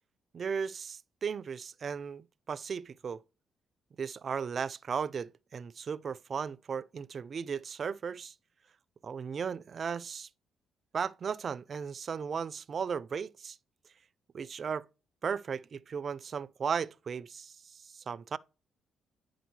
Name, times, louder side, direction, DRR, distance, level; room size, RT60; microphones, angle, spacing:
voice 1, 0.3-3.2 4.0-8.3 9.0-10.3 10.9-13.6 14.3-14.9 15.2-17.5 17.8-18.4, right 6 dB, 45° right, 0.3 m, -36 dB
10.5 x 3.8 x 3.1 m
cardioid pair, 90°, 0 cm